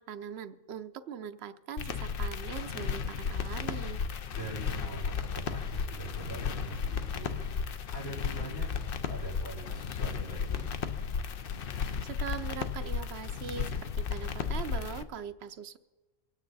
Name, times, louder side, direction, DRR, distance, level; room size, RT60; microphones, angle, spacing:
voice 1, 0.0-4.0 12.0-15.8, right 7 dB, 80° right, 11 dB, 0.9 m, -41 dB
sound 1, 1.8-15.0, left 6 dB, 65° left, 0.8 m, -34 dB
voice 2, 4.3-7.4 7.9-10.7, right 4 dB, 85° left, -6 dB, 5.1 m, -43 dB
23.5 x 9.2 x 4.0 m, 1.2 s
omnidirectional pair, 1.1 m